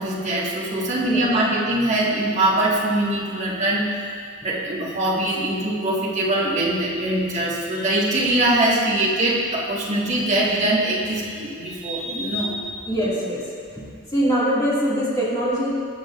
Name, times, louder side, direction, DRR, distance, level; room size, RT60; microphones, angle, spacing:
voice 1, 0.0-3.9 4.4-12.6, right 1 dB, 35° right, -6 dB, 1.7 m, -22 dB
voice 2, 0.8-1.3 12.9-13.4 13.7-15.7, equal, 20° left, -8 dB, 2.1 m, -23 dB
17.5 x 6.4 x 2.5 m, 2.1 s
head